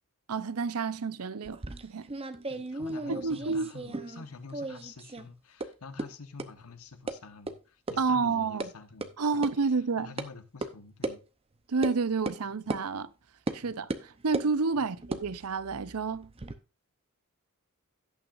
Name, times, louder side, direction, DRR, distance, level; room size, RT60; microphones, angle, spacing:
voice 1, 0.3-2.1 3.1-3.7 8.0-8.7 9.2-10.1 11.7-13.1 13.5-16.3, right 4 dB, 80° right, 0.6 m, -30 dB
sound 1, 1.4-4.2 4.5-5.2 5.6-5.7 6.0-6.1 6.4-6.5 7.1-7.2 7.5-7.6 7.9-8.0 8.3-8.7 9.0-9.1 9.4-9.5 10.2-10.3 10.6-10.7 11.0-11.2 11.8-12.0 12.2-12.4 12.7-12.8 13.5-13.6 13.9-14.5 15.0-16.5, right 2 dB, 25° right, 0.7 m, -35 dB
voice 2, 2.5-11.2 13.6-13.9 14.7-14.9, left 4 dB, 75° left, 1.3 m, -48 dB
17.0 x 6.1 x 2.5 m
head